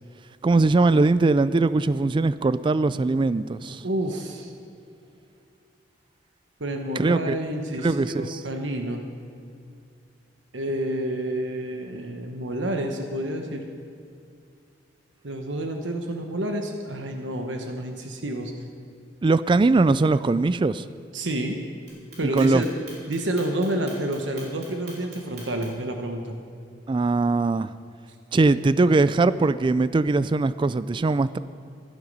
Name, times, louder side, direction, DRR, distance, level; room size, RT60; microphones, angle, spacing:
voice 1, 0.4-3.8 7.0-7.4 7.8-8.4 19.2-20.9 22.2-22.6 26.9-27.7 28.3-31.4, right 3 dB, 25° right, 15 dB, 0.3 m, -21 dB
voice 2, 3.8-4.5 6.6-9.0 10.5-13.6 15.2-18.5 21.1-21.6 22.2-22.7 23.1-26.4, right 1 dB, 80° right, 4 dB, 1.1 m, -29 dB
Clock, 21.9-25.9, right 3 dB, 60° right, 3.8 m, -45 dB
14.0 x 12.0 x 5.4 m, 2.4 s
head